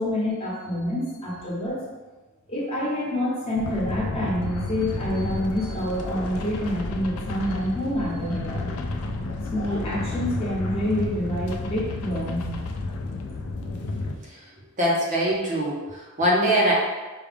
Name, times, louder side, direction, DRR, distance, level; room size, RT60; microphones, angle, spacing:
voice 1, 0.0-1.8 2.5-8.6 9.5-12.5, equal, 25° left, -6 dB, 1.1 m, -27 dB
sound 1, 3.6-14.2, left 2 dB, 80° left, 0.4 m, -31 dB
voice 2, 14.8-16.7, equal, 35° right, -4 dB, 0.7 m, -23 dB
4.9 x 2.3 x 3.4 m, 1.2 s
head